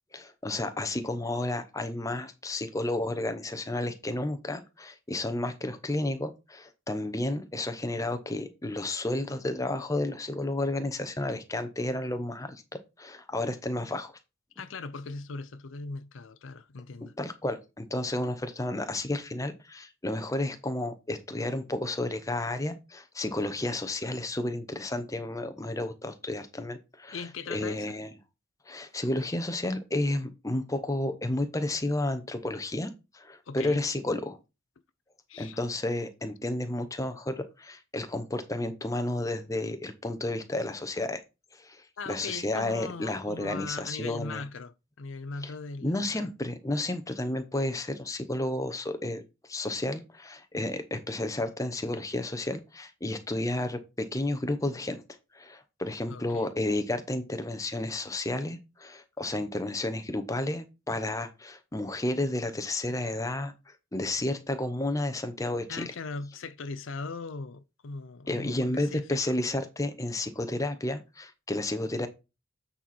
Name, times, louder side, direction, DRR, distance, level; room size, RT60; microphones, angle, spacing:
voice 1, 0.1-12.6 13.0-14.2 17.2-28.1 28.7-34.4 35.4-41.2 41.5-44.4 45.4-45.5 45.8-55.0 55.3-65.8 68.3-72.1, left 1 dB, 15° left, 0.7 m, -32 dB
voice 2, 14.6-17.1 27.1-27.9 33.5-33.8 35.3-35.6 42.0-46.3 56.1-56.5 65.7-69.2, left 4 dB, 70° left, 0.6 m, -39 dB
8.8 x 4.2 x 4.3 m
head